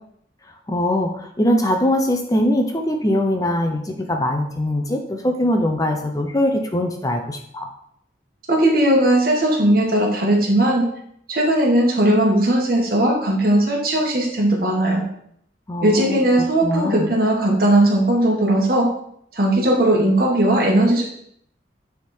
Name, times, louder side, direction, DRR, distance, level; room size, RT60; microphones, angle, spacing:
voice 1, 0.7-7.7 15.7-17.1, left 1 dB, 20° left, 4 dB, 0.6 m, -22 dB
voice 2, 8.5-10.9 11.3-15.0 15.8-18.9 19.3-21.0, right 1 dB, 55° right, 0 dB, 1.7 m, -18 dB
9.3 x 3.7 x 4.4 m, 0.69 s
head